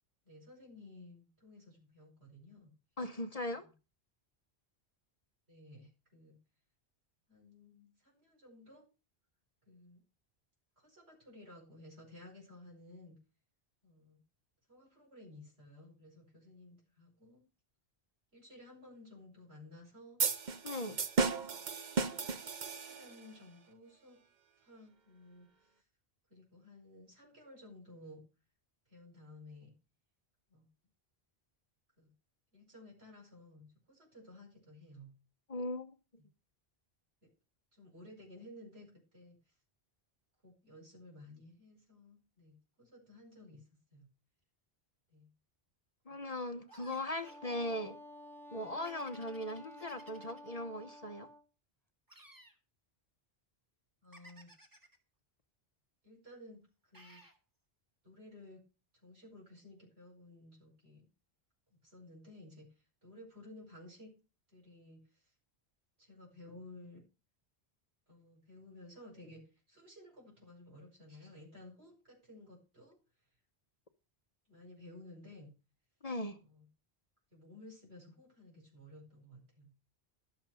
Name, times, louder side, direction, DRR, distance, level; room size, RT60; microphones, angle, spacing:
voice 1, 0.2-2.7 3.5-3.7 5.5-6.4 7.3-8.9 9.6-10.0 10.8-13.2 13.8-14.2 14.7-17.4 18.3-20.2 22.6-24.2 24.6-25.8 26.3-28.3 28.9-29.7 30.5-30.7 32.0-32.1 32.5-35.1 36.2-36.3 37.7-39.5 40.4-43.6 43.9-44.1 45.1-45.3 46.1-46.2 54.0-54.5 56.0-57.2 58.0-58.6 59.0-61.1 61.7-64.1 64.5-65.3 66.0-67.0 68.1-73.0 74.5-75.5 76.4-76.7 77.3-79.7, left 1 dB, 75° right, 5.4 m, -55 dB
voice 2, 3.0-3.6 20.6-21.0 35.5-35.9 46.1-48.0 48.5-51.3 76.0-76.4, left 1 dB, 40° left, 0.9 m, -39 dB
sound 1, 20.2-23.3, right 4 dB, 45° right, 1.0 m, -34 dB
sound 2, 46.7-47.5 48.8-50.6 52.1-52.6 54.1-55.0 56.9-57.4, right 1 dB, 20° right, 1.9 m, -58 dB
Wind instrument woodwind instrument, 47.2-51.4, equal, ahead, 1.0 m, -52 dB
12.0 x 7.1 x 6.1 m
omnidirectional pair, 1.1 m